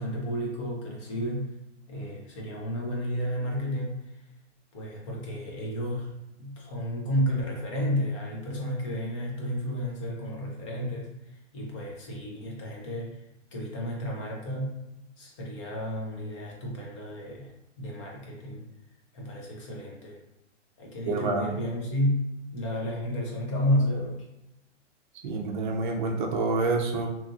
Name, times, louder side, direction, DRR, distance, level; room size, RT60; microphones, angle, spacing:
voice 1, 0.0-1.5 1.9-4.2 4.7-6.1 6.4-13.2 13.5-14.8 15.2-17.5 17.8-18.6 19.1-20.2 20.8-22.2 22.5-24.2, equal, 25° left, -2 dB, 0.5 m, -31 dB
voice 2, 21.1-21.5 25.2-27.1, right 3 dB, 40° right, 1 dB, 0.5 m, -27 dB
2.9 x 2.3 x 2.5 m, 0.88 s
hypercardioid pair, 150°, 37 cm